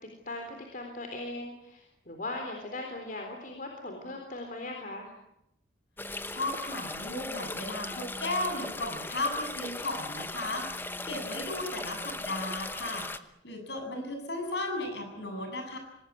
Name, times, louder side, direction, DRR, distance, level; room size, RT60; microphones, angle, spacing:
voice 1, 0.3-5.1, left 2 dB, 45° left, 3 dB, 3.8 m, -39 dB
sound 1, 6.0-13.2, left 2 dB, 10° left, 1.0 m, -38 dB
voice 2, 6.3-13.1 13.4-15.8, left 2 dB, 60° left, 5 dB, 8.0 m, -35 dB
25.0 x 19.0 x 9.6 m, 0.83 s
head